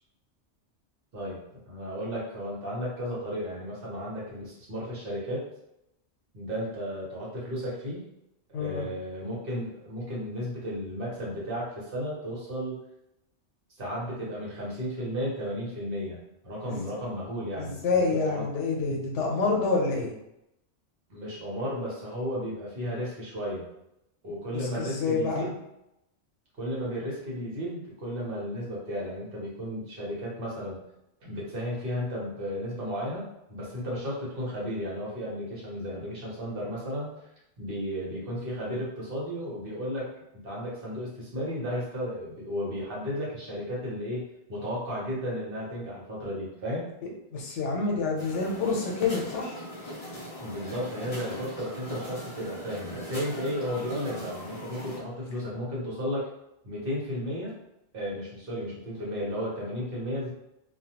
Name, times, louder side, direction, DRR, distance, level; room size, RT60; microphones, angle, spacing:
voice 1, 1.7-5.4 6.3-8.1 8.5-12.8 13.8-18.4 21.1-23.7 24.2-25.5 26.6-30.8 31.2-37.1 37.6-40.1 40.4-46.9 50.4-56.3 56.6-57.5 57.9-60.3, equal, 55° right, -5 dB, 1.0 m, -34 dB
voice 2, 8.5-8.9 16.7-16.9 17.6-20.1 24.5-25.5 47.3-49.6, left 4 dB, 85° left, 0 dB, 1.0 m, -28 dB
sound 1, 48.2-55.0, equal, 35° left, 0.5 m, -40 dB
2.3 x 2.2 x 2.8 m, 0.84 s
omnidirectional pair, 1.2 m